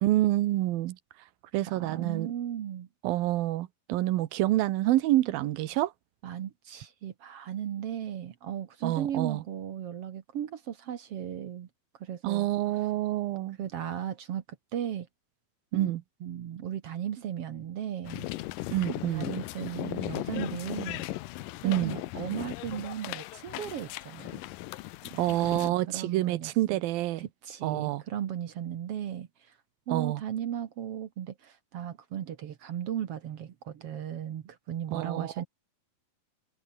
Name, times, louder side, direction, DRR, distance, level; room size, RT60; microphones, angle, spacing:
voice 1, 0.0-1.0 1.5-2.3 3.0-5.9 8.8-9.4 12.2-13.6 15.7-16.0 18.7-19.3 21.6-22.0 25.2-27.3 27.6-28.0 29.9-30.2 34.9-35.3, right 15 dB, 80° right, 2.8 m, -27 dB
voice 2, 1.7-2.9 6.2-11.7 12.0-12.5 13.6-14.4 14.7-15.1 15.7-15.9 16.2-18.3 19.1-21.0 21.6-24.4 25.1-26.5 27.2-29.5 29.9-35.4, right 10 dB, 60° right, 1.6 m, -36 dB
sound 1, 18.0-25.7, left 18 dB, 75° left, 2.2 m, -37 dB
omnidirectional pair, 4.2 m